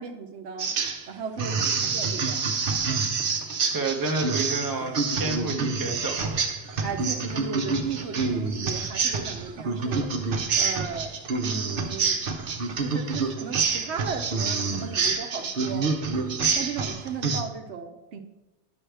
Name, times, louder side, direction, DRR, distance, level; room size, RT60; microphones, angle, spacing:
voice 1, 0.0-2.5 2.8-3.4 5.5-5.7 6.8-11.1 11.4-12.4 12.8-15.9 16.6-18.2, right 6 dB, 75° right, 5 dB, 1.0 m, -36 dB
sound 1, 0.6-1.1 1.4-17.4, right 4 dB, 55° right, 0.9 m, -27 dB
voice 2, 1.6-2.0 3.3-3.5 3.7-6.4, right 3 dB, 20° right, 2 dB, 0.8 m, -30 dB
10.5 x 6.2 x 3.4 m, 1.0 s
omnidirectional pair, 1.1 m